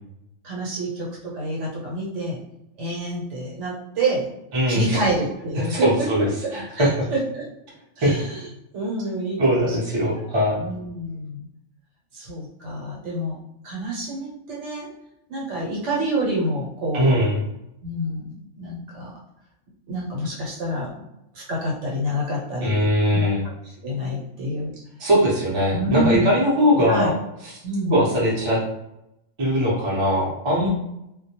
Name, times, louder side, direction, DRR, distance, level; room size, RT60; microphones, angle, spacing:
voice 1, 0.4-2.4 2.8-4.3 4.7-5.9 6.4-6.5 6.8-7.4 8.0-8.5 8.7-9.8 10.1-10.2 10.6-11.4 12.1-13.4 13.6-14.9 15.3-17.2 17.8-19.1 19.9-20.9 21.3-22.7 23.1-23.3 23.8-24.7 25.7-26.3 26.9-27.1 27.6-27.9 30.6-30.7, right 1 dB, 65° right, -3 dB, 1.0 m, -27 dB
voice 2, 4.5-5.0 5.6-6.9 8.0-8.2 9.4-10.6 16.9-17.4 22.6-23.4 25.0-27.1 27.4-27.6 27.8-28.6 29.4-30.7, equal, 30° right, -6 dB, 0.6 m, -21 dB
2.2 x 2.1 x 2.8 m, 0.84 s
omnidirectional pair, 1.3 m